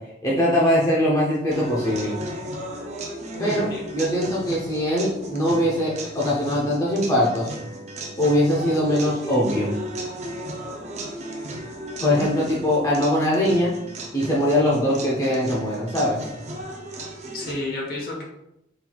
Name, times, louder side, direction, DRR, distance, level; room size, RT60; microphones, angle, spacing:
voice 1, 0.2-2.1 3.4-7.5 8.2-9.7 12.0-13.7 14.1-16.2, equal, 20° left, -5 dB, 0.7 m, -22 dB
sound 1, 1.5-17.5, right 1 dB, 40° right, 0.6 m, -35 dB
voice 2, 3.3-3.8 12.0-12.2 17.3-18.2, left 2 dB, 55° left, -1 dB, 1.1 m, -31 dB
4.3 x 4.0 x 2.3 m, 0.84 s
head